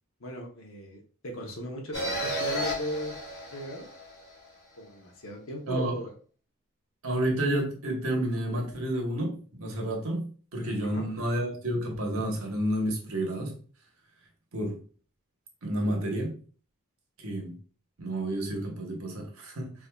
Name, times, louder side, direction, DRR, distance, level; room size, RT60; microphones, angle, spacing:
voice 1, 0.2-3.2 3.5-3.9 4.8-6.1 10.8-11.1, equal, 65° left, 1 dB, 0.9 m, -37 dB
sound 1, 1.9-4.5, equal, 85° left, 1.3 m, -33 dB
voice 2, 7.0-13.5 14.5-14.8 15.6-16.3 17.2-17.6 18.0-19.7, right 1 dB, 80° right, 1 dB, 1.1 m, -30 dB
4.7 x 2.6 x 2.3 m, 0.41 s
head